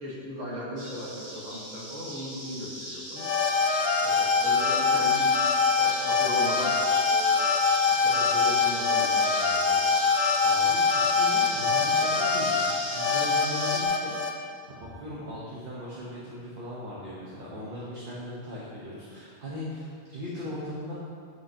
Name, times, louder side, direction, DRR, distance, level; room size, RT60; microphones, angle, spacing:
voice 1, 0.0-3.3 4.0-5.3 5.8-7.4 7.9-10.0, left 1 dB, 85° right, -6 dB, 1.8 m, -38 dB
sound 1, 0.8-13.9, right 1 dB, 25° right, 0.6 m, -36 dB
sound 2, 3.2-14.3, left 5 dB, 60° left, 0.9 m, -24 dB
voice 2, 10.4-12.7 12.9-14.2 14.7-20.9, left 1 dB, 45° right, -7 dB, 1.2 m, -38 dB
9.2 x 5.5 x 2.8 m, 2.2 s
omnidirectional pair, 1.2 m